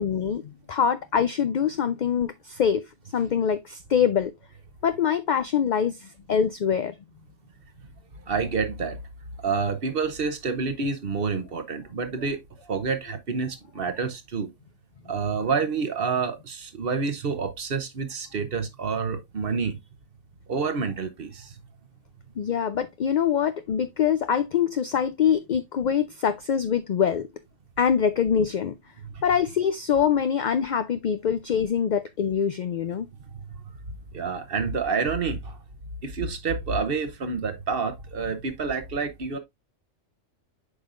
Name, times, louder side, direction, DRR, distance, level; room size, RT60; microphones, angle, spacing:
voice 1, 0.0-2.8 3.1-4.3 4.8-6.9 22.4-27.3 27.8-28.7 29.2-33.1, left 8 dB, 60° left, 0.5 m, -24 dB
voice 2, 8.3-9.0 9.4-12.4 12.7-14.5 15.1-19.8 20.5-21.5 34.1-35.6 36.0-39.4, right 5 dB, 50° right, 1.0 m, -28 dB
8.1 x 5.3 x 2.4 m
omnidirectional pair, 1.3 m